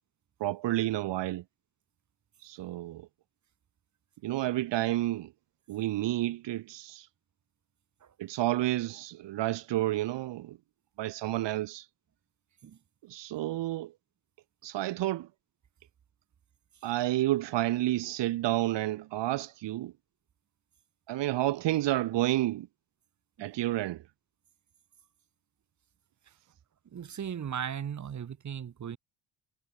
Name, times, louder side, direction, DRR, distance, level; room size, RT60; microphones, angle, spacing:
voice 1, 0.4-1.4 2.4-3.1 4.2-5.3 5.7-7.1 8.2-10.6 11.0-11.9 13.1-13.9 14.6-15.3 16.8-19.9 21.1-22.7 23.4-24.0, right 15 dB, 80° right, 1.1 m, -30 dB
voice 2, 26.9-29.0, right 8 dB, 40° right, 2.1 m, -37 dB
cardioid pair, 155°, 43 cm